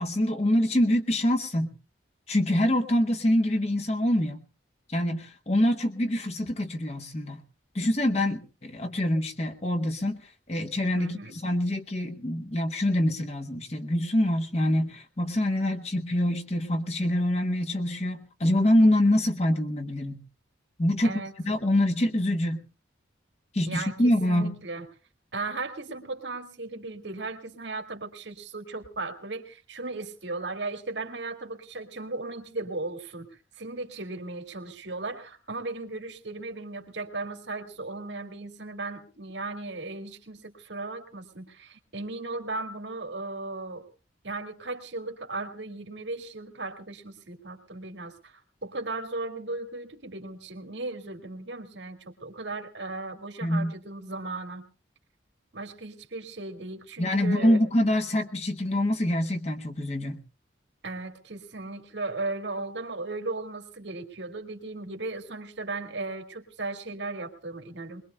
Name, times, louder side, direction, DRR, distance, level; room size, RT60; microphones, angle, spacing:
voice 1, 0.0-1.7 2.3-4.4 4.9-7.4 7.7-20.2 20.8-21.1 21.4-22.6 23.5-24.6 53.4-53.7 57.0-60.2, left 1 dB, 35° left, 6 dB, 1.0 m, -25 dB
voice 2, 10.9-11.4 21.0-21.3 23.7-24.9 25.3-33.3 33.6-43.9 44.2-54.7 55.5-57.6 60.8-68.0, right 3 dB, 70° right, 5 dB, 2.0 m, -36 dB
22.0 x 21.5 x 2.2 m, 0.34 s
head